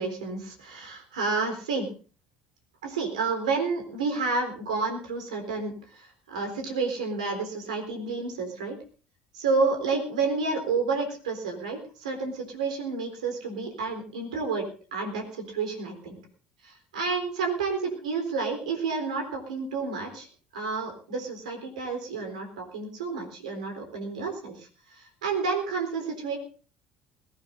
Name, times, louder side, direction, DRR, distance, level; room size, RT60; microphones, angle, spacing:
voice 1, 0.0-1.9 2.8-8.8 9.3-16.2 16.6-20.3 20.5-26.4, right 4 dB, 90° right, 5 dB, 3.8 m, -30 dB
21.5 x 15.0 x 2.7 m, 0.37 s
hypercardioid pair, 70°, 4 cm